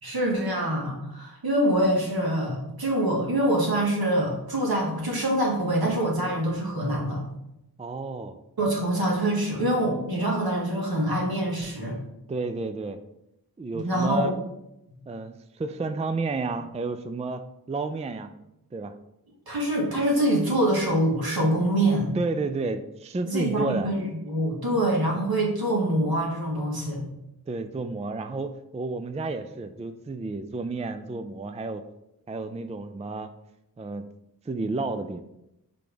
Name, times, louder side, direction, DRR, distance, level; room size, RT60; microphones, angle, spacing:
voice 1, 0.0-7.2 8.6-12.0 13.7-14.3 19.5-22.1 23.3-27.0, right 1 dB, 75° right, -3 dB, 2.0 m, -25 dB
voice 2, 7.8-8.4 12.3-13.0 13.6-14.3 15.1-17.4 17.7-18.3 18.7-18.9 22.1-23.9 27.5-31.8 32.3-33.3 33.8-34.1 34.5-35.2, right 3 dB, 20° right, 9 dB, 0.3 m, -31 dB
5.9 x 3.5 x 5.0 m, 0.84 s
wide cardioid pair, 75°, 37 cm